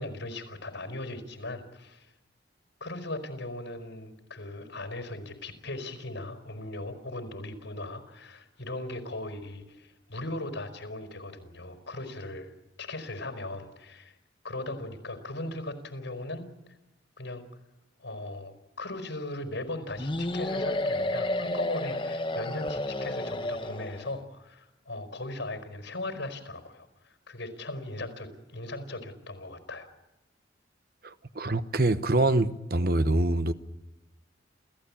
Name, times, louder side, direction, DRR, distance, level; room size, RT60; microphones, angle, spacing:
voice 1, 0.0-2.1 2.8-12.5 12.8-14.1 14.4-16.5 17.2-17.4 18.0-29.9, left 2 dB, 90° left, 4.8 m, -38 dB
sound 1, 20.0-24.2, left 1 dB, 25° left, 1.2 m, -31 dB
voice 2, 31.0-33.5, right 2 dB, 50° right, 1.0 m, -25 dB
28.5 x 15.5 x 8.8 m
head